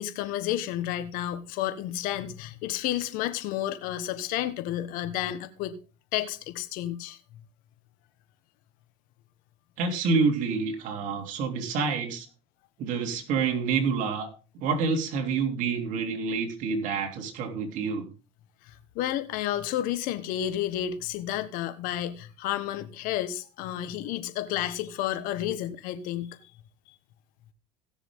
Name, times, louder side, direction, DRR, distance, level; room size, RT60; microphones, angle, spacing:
voice 1, 0.0-5.8 6.1-7.2 18.6-26.4, left 12 dB, 65° left, 1.3 m, -31 dB
voice 2, 9.8-12.3 12.8-14.3 14.5-18.1, right 5 dB, 60° right, 3.2 m, -28 dB
16.5 x 6.9 x 3.7 m
supercardioid pair, 90°, 15 cm